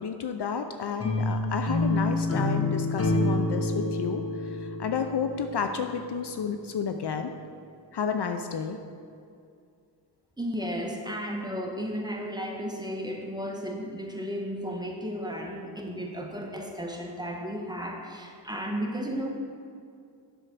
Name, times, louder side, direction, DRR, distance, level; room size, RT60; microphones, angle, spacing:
voice 1, 0.0-7.3 7.9-8.8, left 6 dB, 55° left, 7 dB, 0.7 m, -31 dB
sound 1, 1.0-6.1, left 2 dB, 30° left, 1.1 m, -28 dB
voice 2, 10.4-19.3, equal, 10° right, 0 dB, 1.4 m, -34 dB
7.9 x 6.2 x 6.1 m, 2.4 s
cardioid pair, 65°, 47 cm